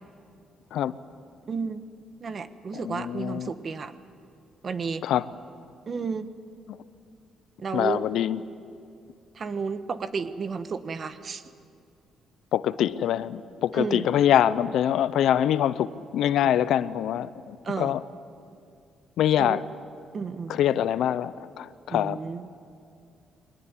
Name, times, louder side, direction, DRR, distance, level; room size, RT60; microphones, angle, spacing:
voice 1, 1.5-1.8 2.2-3.9 4.6-5.1 5.9-6.3 7.6-8.0 9.3-11.4 13.7-14.1 16.4-16.5 17.6-18.0 19.4-19.6 20.1-20.6 21.9-22.5, right 5 dB, 45° right, 11 dB, 1.3 m, -32 dB
voice 2, 2.7-3.5 5.0-5.2 7.7-8.4 12.5-18.0 19.2-19.6 20.5-22.2, left 10 dB, 80° left, 16 dB, 0.7 m, -24 dB
22.5 x 19.5 x 9.8 m, 2.4 s
cardioid pair, 90°, 0 cm